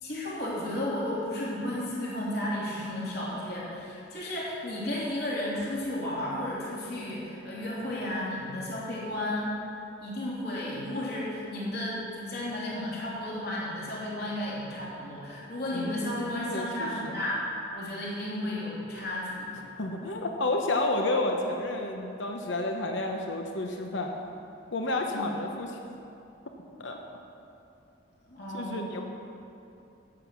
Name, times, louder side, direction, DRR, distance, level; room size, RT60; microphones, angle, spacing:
voice 1, 0.0-9.6 10.0-17.4 17.7-19.5 25.1-25.3 28.2-28.8, left 1 dB, 55° left, -6 dB, 3.0 m, -33 dB
voice 2, 15.7-17.2 19.7-24.1 24.7-25.8 26.8-27.0 28.5-29.1, left 2 dB, 75° left, 2 dB, 0.9 m, -31 dB
11.0 x 8.9 x 6.2 m, 2.7 s
head